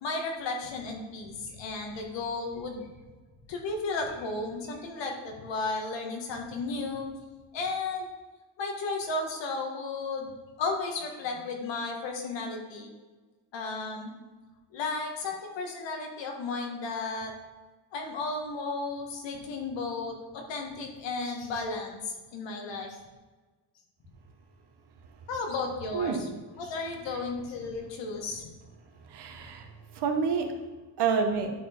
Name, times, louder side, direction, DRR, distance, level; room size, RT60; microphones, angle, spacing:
voice 1, 0.0-2.9 3.5-7.1 7.5-8.1 8.6-10.3 10.6-12.9 13.5-14.1 14.7-17.3 17.9-23.0 25.3-26.3 26.6-28.5, left 3 dB, 90° left, 2 dB, 1.7 m, -34 dB
voice 2, 25.9-26.3 29.1-30.5 31.0-31.5, right 5 dB, 65° right, 5 dB, 1.2 m, -28 dB
11.5 x 4.4 x 4.5 m, 1.3 s
cardioid pair, 150°, 43 cm